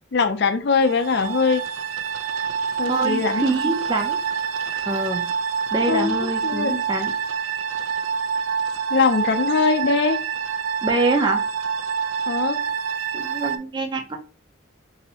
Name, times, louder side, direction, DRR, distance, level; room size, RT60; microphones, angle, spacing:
voice 1, 0.1-1.6 2.8-3.5 5.9-6.8 8.9-10.2 12.3-12.6, left 4 dB, 55° left, 8 dB, 0.5 m, -21 dB
sound 1, 0.8-13.6, right 6 dB, 75° right, 0.4 m, -26 dB
voice 2, 2.8-4.2 4.8-5.3 5.7-7.1 10.8-11.4 13.1-14.2, right 2 dB, 20° right, 3 dB, 0.5 m, -25 dB
2.8 x 2.6 x 4.1 m, 0.35 s
head